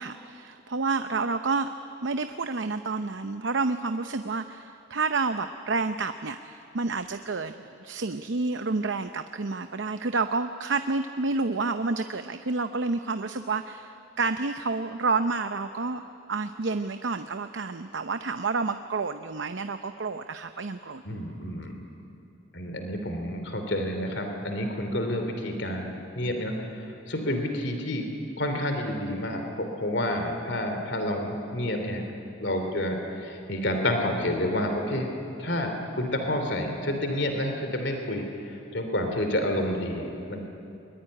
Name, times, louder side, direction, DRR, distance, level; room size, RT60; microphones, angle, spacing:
voice 1, 0.0-1.7 2.0-21.2, right 3 dB, 70° right, 9 dB, 0.7 m, -29 dB
voice 2, 21.0-21.7 22.5-28.1 28.4-32.0 32.4-35.1 35.4-38.2 38.7-40.4, left 1 dB, 65° left, 4 dB, 3.1 m, -29 dB
22.5 x 22.0 x 9.9 m, 2.9 s
head